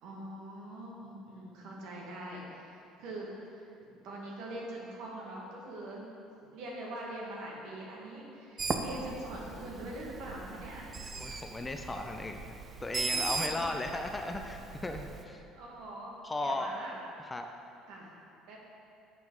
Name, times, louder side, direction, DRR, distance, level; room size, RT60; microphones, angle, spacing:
voice 1, 0.0-2.7 3.0-3.6 4.0-6.0 6.5-10.8 13.1-13.5 15.5-16.1 16.4-16.9 17.9-18.1 18.5-18.6, right 1 dB, 60° right, -3 dB, 1.6 m, -43 dB
Bird, 8.6-15.2, right 4 dB, 30° right, 0.6 m, -38 dB
voice 2, 11.2-12.4 12.8-15.4 16.2-16.7 17.2-17.5, left 2 dB, 20° left, 5 dB, 0.6 m, -36 dB
9.1 x 5.8 x 3.8 m, 2.7 s
figure-of-eight pair, 60°, 0 cm